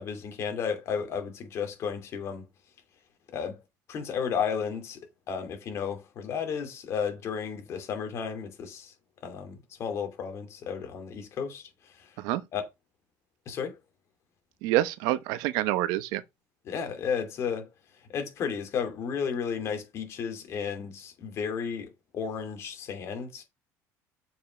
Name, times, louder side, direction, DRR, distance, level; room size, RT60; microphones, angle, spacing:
voice 1, 0.0-2.4 3.3-3.6 3.9-5.0 5.3-8.9 9.2-12.1 12.5-12.6 13.5-13.8 16.6-17.7 18.1-23.4, left 6 dB, 45° left, 2.7 m, -33 dB
voice 2, 14.6-16.2, right 15 dB, 80° right, 0.9 m, -27 dB
7.0 x 5.6 x 5.3 m
cardioid pair, 145°, 7 cm